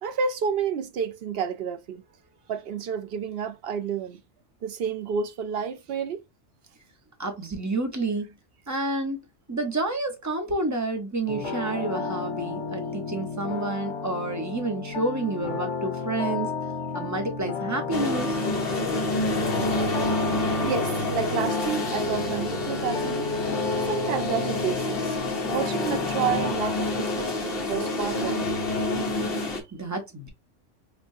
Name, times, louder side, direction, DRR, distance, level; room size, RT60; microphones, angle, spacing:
voice 1, 0.0-2.0 2.5-4.2 4.6-6.2 20.0-20.3 20.6-23.4 23.8-25.2 25.4-28.6, right 7 dB, 65° right, 0.7 m, -30 dB
voice 2, 7.2-8.3 8.7-16.5 16.9-18.4 29.7-30.3, right 2 dB, 15° right, 0.8 m, -29 dB
sound 1, 11.3-26.5, left 4 dB, 85° left, 1.3 m, -33 dB
sound 2, 17.9-29.6, left 2 dB, 55° left, 1.2 m, -28 dB
5.1 x 2.2 x 2.6 m
omnidirectional pair, 1.2 m